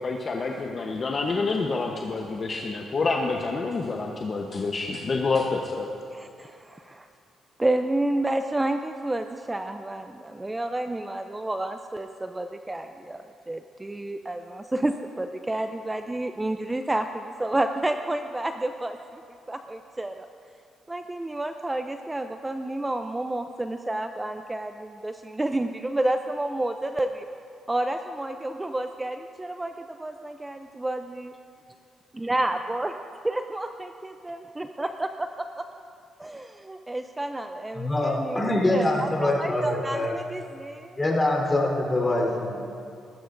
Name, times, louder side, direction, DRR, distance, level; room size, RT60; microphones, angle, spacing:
voice 1, 0.0-5.9, left 3 dB, 40° left, 1 dB, 0.9 m, -28 dB
voice 2, 6.1-7.1 7.6-19.2 19.5-20.3 20.9-27.3 27.7-31.3 32.1-32.9 33.2-35.7 36.2-41.0, right 1 dB, 15° right, 7 dB, 0.5 m, -30 dB
voice 3, 37.8-40.2 41.0-42.6, left 1 dB, 20° left, -1 dB, 3.7 m, -24 dB
19.0 x 15.0 x 2.6 m, 2.5 s
cardioid pair, 90°, 0 cm